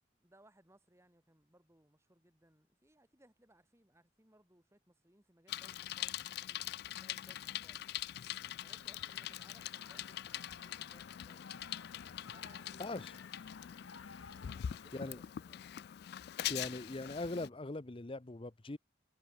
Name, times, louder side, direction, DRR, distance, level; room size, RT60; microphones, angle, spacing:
voice 1, 0.1-6.7 7.0-7.9 8.6-11.7 12.3-13.3 13.7-14.0 14.5-15.7, right 1 dB, 15° right, 2.7 m, -67 dB
Bicycle, 5.5-17.5, left 12 dB, 55° left, 0.3 m, -43 dB
sound 1, 8.7-15.0, left 5 dB, 85° left, 2.0 m, -56 dB
voice 2, 12.8-13.1 14.9-15.2 16.5-18.8, left 2 dB, 30° left, 0.7 m, -41 dB
head